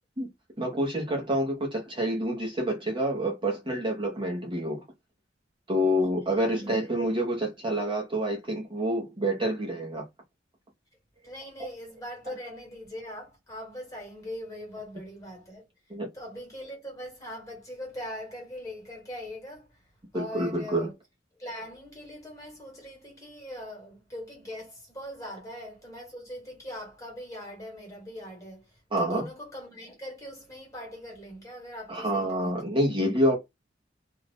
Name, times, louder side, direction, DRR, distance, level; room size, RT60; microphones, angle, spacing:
voice 1, 0.6-4.8 5.7-10.1 15.9-16.1 20.1-20.9 28.9-29.2 31.9-33.4, equal, 25° right, 0.8 m, -27 dB
voice 2, 11.2-15.7 16.1-19.8 20.1-20.9 21.3-32.8, left 1 dB, 20° left, 1.5 m, -41 dB
2.5 x 2.3 x 3.4 m
head